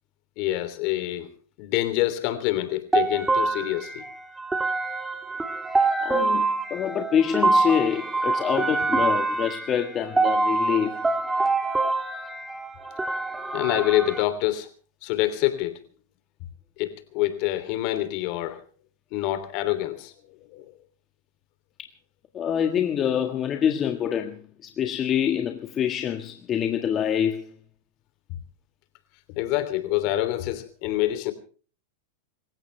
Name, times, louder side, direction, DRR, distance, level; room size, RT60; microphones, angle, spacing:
voice 1, 0.4-1.3 1.6-4.0 13.5-14.7 15.0-15.8 16.8-18.6 19.1-20.1 20.5-20.6 29.4-31.3, left 15 dB, 50° left, 3.1 m, -26 dB
sound 1, 2.9-14.2, right 3 dB, 10° right, 2.5 m, -25 dB
voice 2, 5.7-11.0 22.3-27.5, left 9 dB, 30° left, 1.5 m, -26 dB
25.5 x 15.5 x 3.4 m
hypercardioid pair, 125°, 0 cm